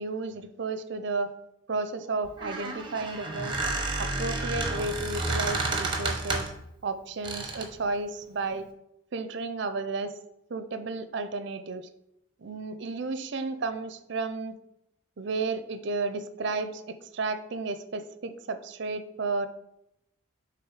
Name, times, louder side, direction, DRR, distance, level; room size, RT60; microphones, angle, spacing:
voice 1, 0.0-1.3 1.7-3.6 4.0-6.5 6.8-8.6 9.1-10.1 10.5-11.9 12.4-14.6 15.2-19.5, right 3 dB, 60° right, 10 dB, 0.5 m, -32 dB
Squeak, 2.2-6.6 7.2-7.8, right 3 dB, 25° right, 1.0 m, -31 dB
7.0 x 3.4 x 4.8 m, 0.83 s
head